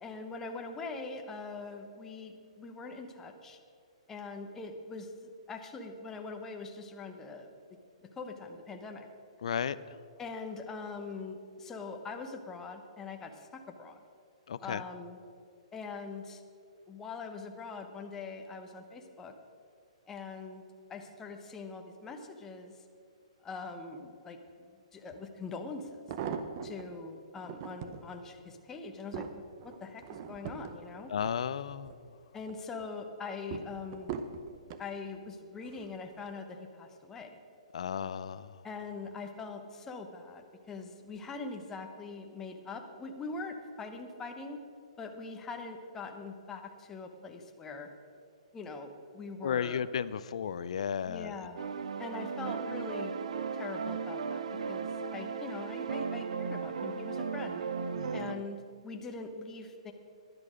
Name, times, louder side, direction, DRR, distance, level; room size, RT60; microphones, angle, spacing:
voice 1, 0.0-3.6 4.1-5.1 5.5-7.5 8.2-9.1 10.2-14.0 14.6-15.2 15.7-16.4 16.9-19.3 20.1-20.6 20.9-22.8 23.4-24.4 24.9-26.0 26.6-29.2 29.6-31.1 32.3-34.2 34.8-37.4 38.6-44.6 45.0-47.9 48.5-49.8 51.0-51.6 52.0-53.1 53.5-57.6 58.1-59.9, left 4 dB, 10° left, 4 dB, 0.8 m, -42 dB
voice 2, 9.4-10.0 14.5-14.8 31.1-31.9 37.7-38.6 49.4-51.5 57.9-58.4, left 8 dB, 65° left, 16 dB, 0.5 m, -34 dB
sound 1, 25.1-25.2 25.8-26.9 27.4-28.0 28.6-32.0 32.4-32.9 33.5-34.9 35.6-36.0 36.3-36.4, right 7 dB, 35° right, 0.7 m, -41 dB
sound 2, 51.6-58.3, right 5 dB, 70° right, 0.7 m, -36 dB
12.5 x 11.0 x 5.0 m, 2.4 s
hypercardioid pair, 155°, 4 cm